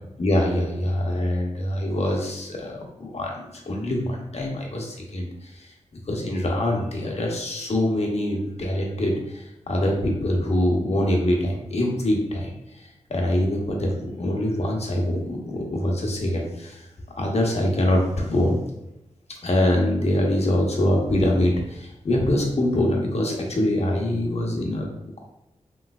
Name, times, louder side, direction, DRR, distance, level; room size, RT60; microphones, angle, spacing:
voice 1, 0.2-5.3 6.1-9.1 9.7-12.5 13.1-16.8 17.2-18.6 19.4-24.9, left 1 dB, 55° left, 0 dB, 0.8 m, -24 dB
3.2 x 3.0 x 2.3 m, 0.89 s
cardioid pair, 55°, 13 cm